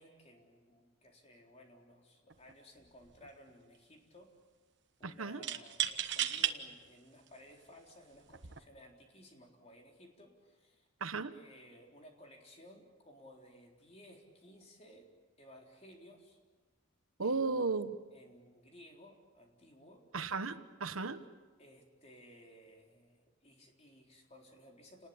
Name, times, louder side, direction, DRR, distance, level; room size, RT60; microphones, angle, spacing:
voice 1, 0.0-4.3 5.0-10.9 11.3-15.1 15.4-16.4 17.2-20.1 21.6-25.1, equal, 30° left, 1 dB, 4.0 m, -58 dB
sound 1, 2.3-2.5 2.8-3.5 5.4-6.6 7.3-7.4 8.3-8.6, right 10 dB, 60° right, 1.3 m, -35 dB
voice 2, 5.0-5.4 11.0-11.3 17.2-17.9 20.1-21.2, right 4 dB, 85° right, 10 dB, 1.2 m, -35 dB
29.5 x 20.0 x 8.7 m, 1.3 s
head